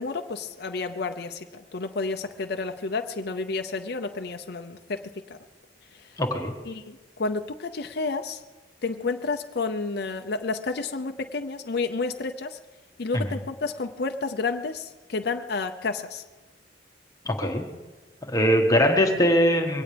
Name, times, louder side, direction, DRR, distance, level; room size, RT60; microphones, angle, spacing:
voice 1, 0.0-5.4 5.9-6.2 6.6-8.4 8.8-12.6 13.0-16.2, left 3 dB, 60° left, 6 dB, 0.6 m, -31 dB
voice 2, 6.2-6.5 13.1-13.2 17.2-17.6 18.2-19.8, equal, 20° left, 2 dB, 1.4 m, -21 dB
22.5 x 17.5 x 3.4 m, 1.2 s
head